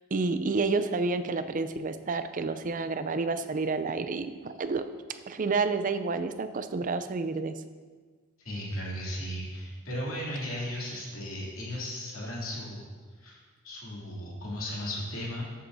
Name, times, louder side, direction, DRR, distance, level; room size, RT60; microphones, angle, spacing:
voice 1, 0.1-4.8 5.3-7.5, right 4 dB, 40° right, 10 dB, 0.5 m, -29 dB
voice 2, 8.4-12.8 13.2-15.5, left 1 dB, 65° left, -5 dB, 2.8 m, -36 dB
13.5 x 7.6 x 2.7 m, 1.5 s
head